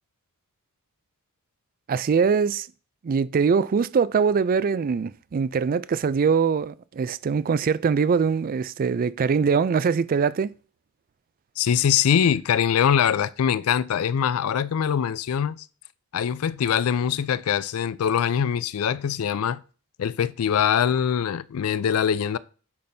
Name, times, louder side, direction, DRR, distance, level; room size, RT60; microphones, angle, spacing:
voice 1, 1.9-2.7 3.0-10.5, right 6 dB, 40° right, 0.3 m, -22 dB
voice 2, 11.6-15.7 16.1-19.6 20.0-22.4, left 8 dB, 85° left, 0.4 m, -23 dB
8.5 x 5.9 x 2.7 m
head